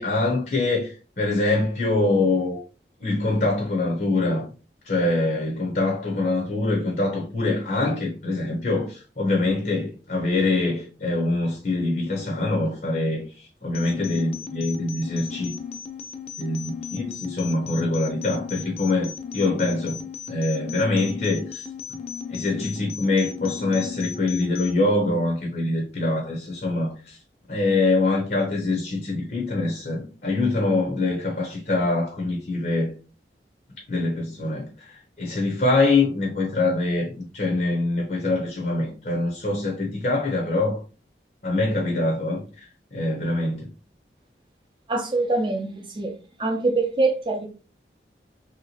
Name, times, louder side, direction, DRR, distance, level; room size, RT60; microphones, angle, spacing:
voice 1, 0.0-2.6 3.0-4.4 4.8-15.5 16.4-20.0 20.3-21.6 22.3-27.2 27.5-32.9 33.9-40.8 41.4-43.7, left 2 dB, 50° left, 0.8 m, -24 dB
sound 1, 13.7-24.8, left 7 dB, 35° left, 0.4 m, -36 dB
voice 2, 44.9-46.1 46.4-47.5, right 3 dB, 30° right, 0.6 m, -24 dB
3.2 x 2.9 x 2.8 m
head